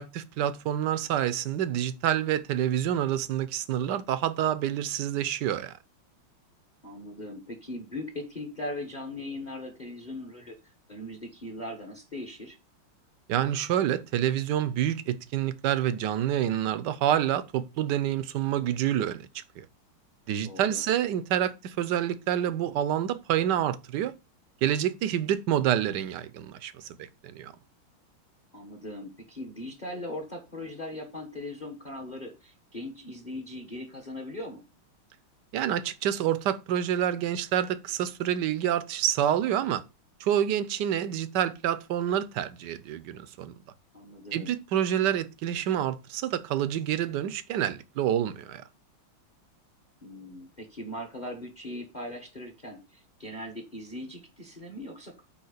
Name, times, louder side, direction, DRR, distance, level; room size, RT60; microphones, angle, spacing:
voice 1, 0.0-5.7 13.3-19.7 20.3-24.1 24.6-27.5 35.5-39.8 40.2-43.5 44.3-48.6, right 10 dB, 65° right, 1.2 m, -28 dB
voice 2, 6.8-10.6 10.9-12.6 20.4-20.8 28.5-34.6 43.9-44.6 50.0-55.2, left 1 dB, 25° left, 1.1 m, -39 dB
8.7 x 3.1 x 6.4 m
omnidirectional pair, 2.3 m